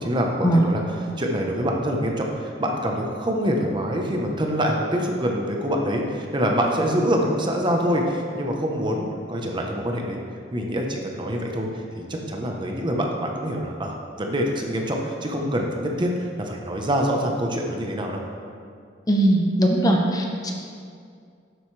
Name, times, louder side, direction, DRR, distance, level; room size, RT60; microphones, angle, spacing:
voice 1, 0.0-10.2 10.5-11.7 11.9-18.2, equal, 25° right, 1 dB, 0.9 m, -25 dB
voice 2, 19.1-20.5, right 1 dB, 20° left, 1 dB, 0.9 m, -19 dB
11.5 x 7.9 x 3.3 m, 2.2 s
head